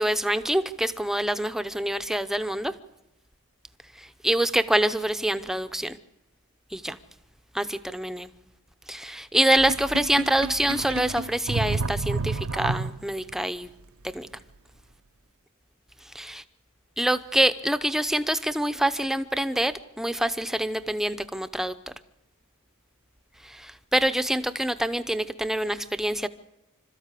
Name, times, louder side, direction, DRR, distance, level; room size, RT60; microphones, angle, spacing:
voice 1, 0.0-2.7 4.0-6.0 6.7-7.0 7.5-8.3 8.9-13.7 14.1-14.3 16.1-16.4 17.0-21.9 23.4-26.3, right 1 dB, ahead, 11 dB, 0.7 m, -26 dB
Sink (filling or washing), 9.6-13.3, right 3 dB, 70° right, 0.6 m, -30 dB
26.5 x 13.5 x 8.3 m, 0.93 s
head